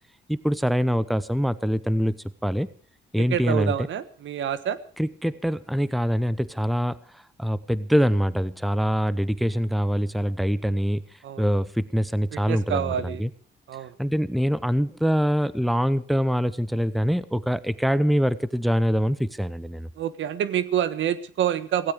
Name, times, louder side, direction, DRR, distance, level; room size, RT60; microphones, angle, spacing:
voice 1, 0.3-2.7 3.1-3.9 5.0-13.3 14.0-19.9, equal, ahead, 17 dB, 0.9 m, -24 dB
voice 2, 3.2-4.8 11.2-11.4 12.3-13.2 13.7-13.9 20.0-21.9, right 9 dB, 70° right, 14 dB, 1.4 m, -27 dB
16.5 x 16.0 x 4.9 m, 0.43 s
cardioid pair, 90°, 20 cm